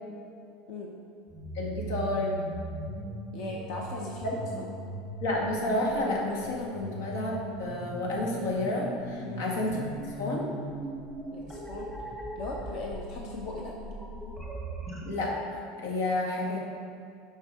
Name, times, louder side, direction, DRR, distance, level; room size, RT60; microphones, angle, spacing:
sound 1, 1.3-15.0, right 1 dB, ahead, 1.1 m, -39 dB
voice 1, 1.5-2.4 5.2-10.5 15.0-16.6, left 1 dB, 80° left, -2 dB, 1.9 m, -30 dB
voice 2, 3.3-4.7 9.2-9.5 11.3-11.9 12.4-13.7, left 2 dB, 45° left, -1 dB, 0.8 m, -38 dB
10.5 x 5.5 x 3.7 m, 2.5 s
supercardioid pair, 165°, 0 cm